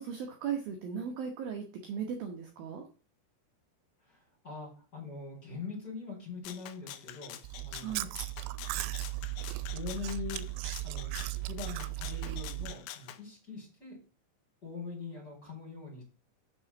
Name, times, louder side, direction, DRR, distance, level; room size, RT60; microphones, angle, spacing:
voice 1, 0.0-2.8 7.8-8.1, right 7 dB, 70° right, 3 dB, 2.4 m, -37 dB
voice 2, 4.0-8.1 9.7-10.5 10.8-14.0 14.6-16.0, left 5 dB, 20° left, -2 dB, 4.7 m, -43 dB
Rattle (instrument), 6.4-13.2, left 12 dB, 80° left, 3.0 m, -46 dB
Chewing mastication, 7.4-12.8, right 19 dB, 90° right, 3.0 m, -37 dB
7.0 x 6.2 x 7.0 m, 0.37 s
omnidirectional pair, 5.4 m